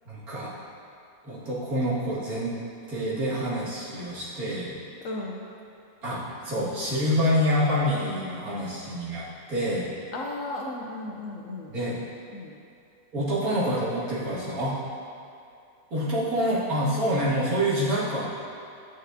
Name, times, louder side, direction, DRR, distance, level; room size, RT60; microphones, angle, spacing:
voice 1, 0.1-0.5 1.2-2.6 2.9-4.7 6.0-9.9 11.7-12.0 13.1-14.8 15.9-18.3, equal, 55° right, -9 dB, 2.3 m, -27 dB
voice 2, 5.0-5.5 10.1-11.7 12.3-12.6, left 2 dB, 65° left, -1 dB, 0.9 m, -35 dB
11.0 x 6.5 x 2.7 m, 2.6 s
omnidirectional pair, 1.9 m